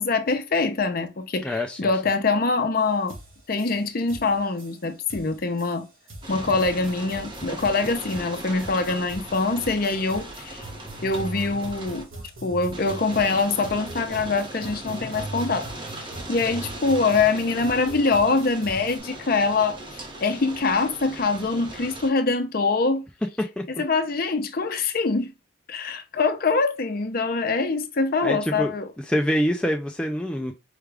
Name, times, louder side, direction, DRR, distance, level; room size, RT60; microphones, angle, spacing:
voice 1, 0.0-3.1 3.5-5.9 6.3-10.7 11.0-12.1 12.4-23.0 23.8-25.3 25.7-28.9, left 3 dB, 50° left, 0.6 m, -24 dB
voice 2, 1.4-1.9 23.4-23.6 28.2-28.7 29.1-30.5, equal, 5° left, 0.3 m, -25 dB
sound 1, 2.8-2.9 3.1-19.0, right 2 dB, 85° right, 1.9 m, -41 dB
sound 2, 6.2-12.0 12.7-22.1, right 1 dB, 25° right, 0.9 m, -39 dB
4.8 x 2.3 x 3.3 m
head